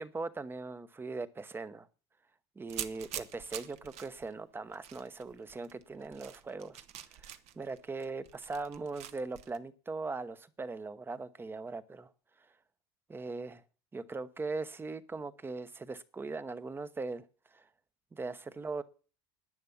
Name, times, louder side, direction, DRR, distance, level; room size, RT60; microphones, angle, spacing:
voice 1, 0.0-1.9 2.6-6.8 7.1-12.1 13.1-13.6 13.9-17.3 17.5-17.7 18.1-18.8, right 3 dB, 15° right, 0.9 m, -40 dB
sound 1, 2.7-9.6, right 11 dB, 55° right, 1.0 m, -46 dB
11.0 x 9.5 x 7.2 m
supercardioid pair, 120°, 14 cm